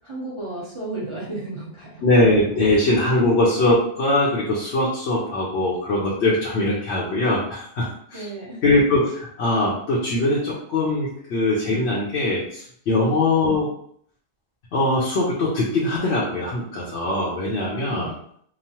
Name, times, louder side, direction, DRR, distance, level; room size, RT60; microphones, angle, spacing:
voice 1, 0.0-2.1 2.7-2.8 8.1-8.6 17.7-18.2, right 2 dB, 30° right, -9 dB, 0.9 m, -34 dB
voice 2, 2.0-8.2 8.6-13.7 14.7-18.1, left 2 dB, 70° left, -5 dB, 1.0 m, -21 dB
3.0 x 2.0 x 2.8 m, 0.63 s
omnidirectional pair, 1.2 m